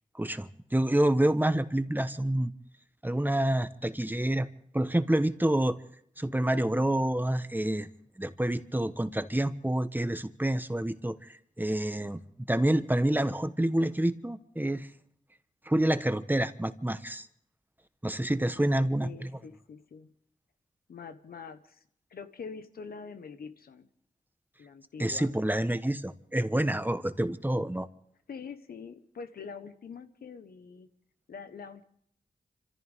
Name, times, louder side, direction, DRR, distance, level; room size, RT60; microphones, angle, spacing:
voice 1, 0.1-2.5 3.0-4.5 4.7-5.8 6.2-7.9 8.2-12.2 12.5-14.9 15.6-17.3 18.0-19.3 25.0-27.9, right 1 dB, 10° right, 10 dB, 1.2 m, -28 dB
voice 2, 18.3-20.1 20.9-21.8 22.1-23.9 24.6-25.3 28.3-30.9 31.3-31.8, left 5 dB, 90° left, 9 dB, 1.3 m, -45 dB
27.0 x 14.5 x 3.7 m, 0.65 s
cardioid pair, 55°, 15 cm